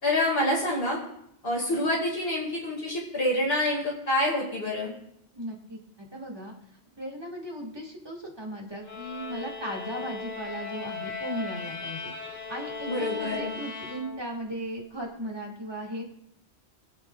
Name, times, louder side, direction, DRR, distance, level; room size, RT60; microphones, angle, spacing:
voice 1, 0.0-1.0 1.4-4.9 12.9-13.6, left 1 dB, 60° left, -4 dB, 2.5 m, -27 dB
voice 2, 5.3-6.5 7.0-16.0, equal, 20° right, -1 dB, 2.0 m, -37 dB
sound 1, 8.8-14.5, left 4 dB, 40° left, 1.9 m, -37 dB
24.5 x 8.2 x 2.4 m, 0.73 s
omnidirectional pair, 1.1 m